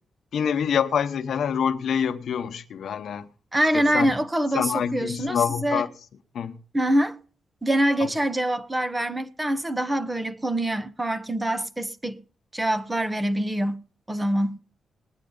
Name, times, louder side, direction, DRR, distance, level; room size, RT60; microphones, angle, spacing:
voice 1, 0.3-3.3 3.7-4.1 4.5-5.9 6.3-6.6 8.0-8.1, left 7 dB, 65° left, 1.1 m, -26 dB
voice 2, 3.5-5.8 6.7-7.2 7.6-12.2 12.5-13.8 14.1-14.6, right 1 dB, 10° right, 0.9 m, -25 dB
19.0 x 10.0 x 3.9 m
wide cardioid pair, 155°, 0 cm